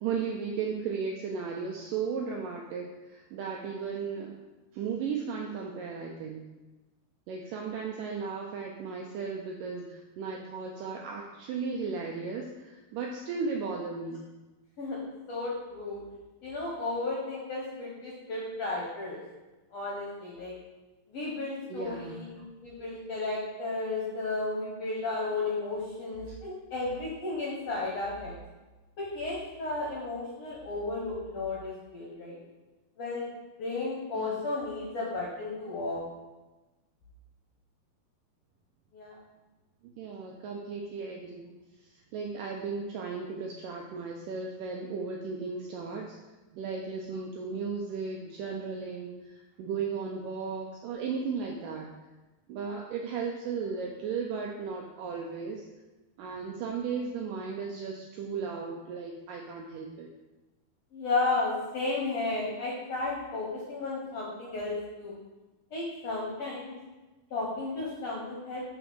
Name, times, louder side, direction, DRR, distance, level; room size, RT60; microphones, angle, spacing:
voice 1, 0.0-4.3 4.7-6.4 7.3-14.2 21.7-22.2 26.3-26.4 34.1-34.4 40.0-46.2 46.5-51.9 52.5-55.7 56.2-60.1, right 5 dB, 85° right, 1 dB, 1.9 m, -35 dB
voice 2, 15.3-16.0 16.4-19.2 19.7-20.5 21.1-28.4 29.0-32.4 33.0-33.3 33.6-36.0 38.9-39.2 60.9-65.2 65.7-66.7 67.3-68.6, left 3 dB, 65° left, -4 dB, 1.6 m, -33 dB
6.4 x 4.0 x 6.1 m, 1.1 s
omnidirectional pair, 4.4 m